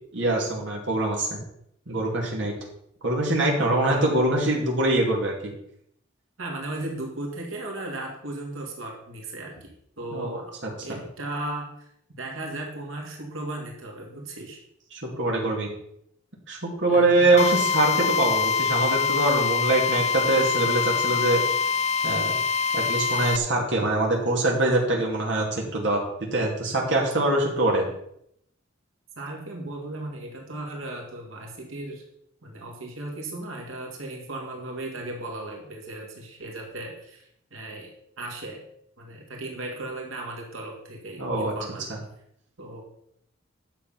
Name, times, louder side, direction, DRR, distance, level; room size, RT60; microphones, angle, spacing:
voice 1, 0.1-1.4 1.9-2.5 3.0-5.5 10.1-10.4 14.9-15.7 16.5-21.4 22.0-22.3 22.7-26.0 26.3-27.9 41.2-41.5 41.9-42.0, right 2 dB, 60° right, -2 dB, 2.5 m, -23 dB
voice 2, 3.8-4.2 6.4-9.7 10.0-10.6 10.8-11.7 12.1-14.6 16.9-17.5 29.2-32.0 32.4-37.9 38.2-38.6 39.0-41.9 42.6-42.8, right 2 dB, 80° right, 0 dB, 2.6 m, -36 dB
Drill, 17.4-23.4, left 6 dB, 35° left, 0.4 m, -24 dB
10.5 x 7.2 x 5.8 m, 0.73 s
head